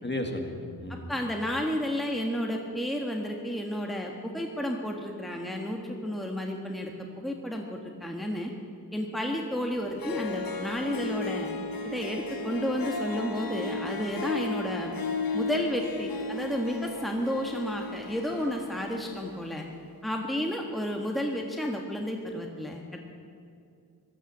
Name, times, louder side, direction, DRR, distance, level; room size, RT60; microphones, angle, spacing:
voice 1, 0.0-1.1, left 1 dB, 25° left, 3 dB, 2.0 m, -34 dB
voice 2, 0.9-8.5 8.9-11.5 11.8-14.9 15.3-19.7 20.0-23.0, equal, ahead, 1 dB, 1.5 m, -32 dB
Harp, 9.7-9.8 10.0-19.5, left 3 dB, 60° left, 1.3 m, -35 dB
17.0 x 11.5 x 7.3 m, 2.4 s
wide cardioid pair, 85°, 39 cm